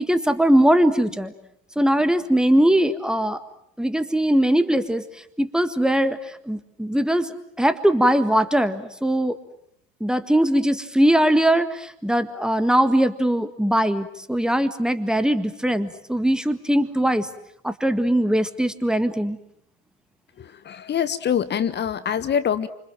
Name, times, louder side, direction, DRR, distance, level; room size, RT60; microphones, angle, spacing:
voice 1, 0.0-1.3 1.7-3.4 3.8-5.0 5.4-6.2 6.4-7.3 7.6-9.4 10.0-17.3 17.6-19.4, right 1 dB, ahead, 11 dB, 1.7 m, -20 dB
voice 2, 20.6-22.7, left 8 dB, 25° left, 14 dB, 1.3 m, -24 dB
29.0 x 26.5 x 7.6 m, 0.73 s
figure-of-eight pair, 80°, 39 cm